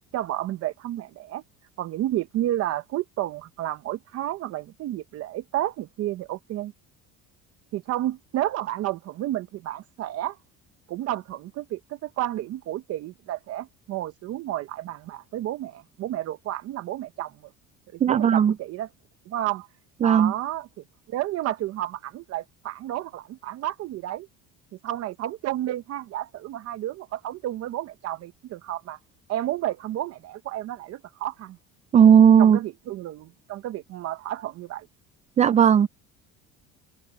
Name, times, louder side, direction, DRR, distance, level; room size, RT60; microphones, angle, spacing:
voice 1, 0.1-1.4 1.8-6.7 7.7-10.4 10.9-17.3 17.9-18.9 19.3-19.7 20.0-20.7 21.1-24.3 24.8-29.0 29.3-31.6 32.4-34.9, right 14 dB, 55° right, 0.8 m, -31 dB
voice 2, 18.0-18.5 20.0-20.3 31.9-32.6 35.4-35.9, right 8 dB, 25° right, 0.4 m, -16 dB
cardioid pair, 140°, 30 cm